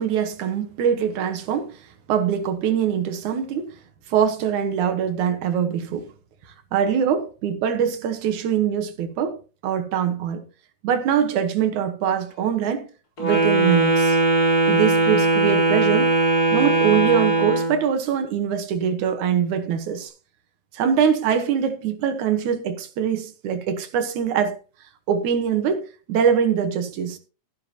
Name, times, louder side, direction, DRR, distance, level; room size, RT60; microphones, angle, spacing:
voice 1, 0.0-1.8 2.1-3.8 4.1-6.1 6.7-10.5 10.8-12.9 13.2-14.2 14.7-16.2 16.5-20.1 20.7-24.6 25.1-27.2, right 8 dB, 75° right, 2.7 m, -23 dB
Wind instrument woodwind instrument, 13.2-17.8, right 3 dB, 30° left, 4.2 m, -19 dB
13.5 x 11.5 x 2.9 m
omnidirectional pair, 3.4 m